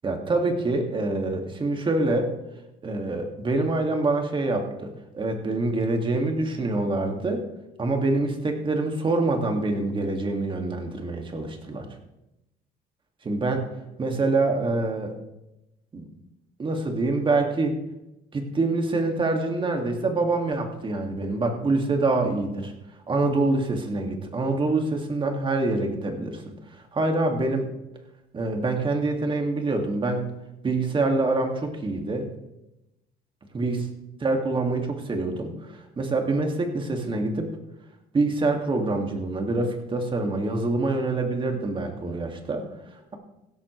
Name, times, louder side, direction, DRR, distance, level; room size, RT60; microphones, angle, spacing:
voice 1, 0.0-2.3 2.8-7.4 7.8-11.9 13.2-13.7 14.0-15.1 15.9-16.1 16.6-17.8 18.3-22.7 23.1-26.5 26.9-27.7 28.3-30.3 30.6-32.3 33.5-33.9 34.2-37.5 38.1-42.7, right 2 dB, 30° right, 3 dB, 2.2 m, -25 dB
16.0 x 12.0 x 3.3 m, 0.91 s
cardioid pair, 110°, 17 cm